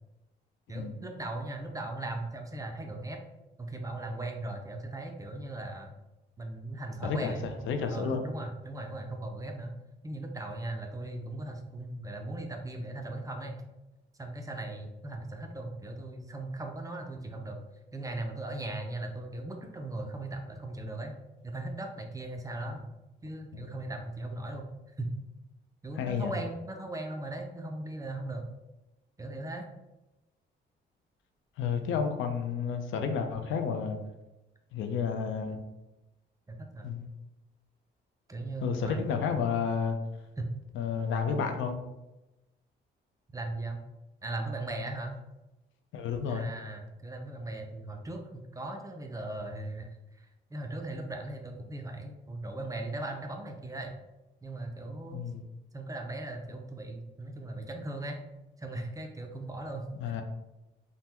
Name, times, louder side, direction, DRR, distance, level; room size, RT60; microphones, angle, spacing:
voice 1, 0.7-3.2 3.6-5.9 6.4-9.7 10.0-13.6 14.2-17.6 17.9-21.1 21.4-22.8 23.2-24.7 25.0-25.1 25.8-28.5 29.2-29.7 35.1-35.2 36.5-36.9 38.3-39.3 40.4-40.5 43.3-43.8 44.2-45.2 46.3-53.9 54.4-55.2 55.7-58.2 58.6-60.2, right 2 dB, 15° right, 3 dB, 0.4 m, -38 dB
voice 2, 7.0-8.2 22.7-22.8 26.0-26.3 31.6-34.0 34.7-35.6 36.8-37.1 38.6-40.0 40.7-41.8 45.9-46.5 55.1-55.4 60.0-60.2, left 6 dB, 75° left, 5 dB, 0.5 m, -31 dB
3.3 x 2.1 x 2.8 m, 0.98 s
cardioid pair, 90°, 20 cm